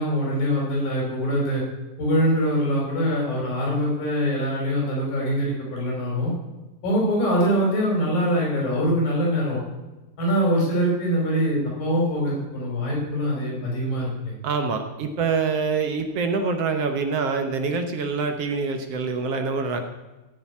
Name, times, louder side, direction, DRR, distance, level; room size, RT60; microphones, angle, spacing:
voice 1, 0.0-1.6 2.0-6.3 6.8-9.6 10.2-14.3 14.6-14.7, equal, 75° left, -2 dB, 6.8 m, -23 dB
voice 2, 14.4-19.8, right 4 dB, 70° right, 6 dB, 1.5 m, -25 dB
15.5 x 7.2 x 8.6 m, 1.1 s
omnidirectional pair, 4.1 m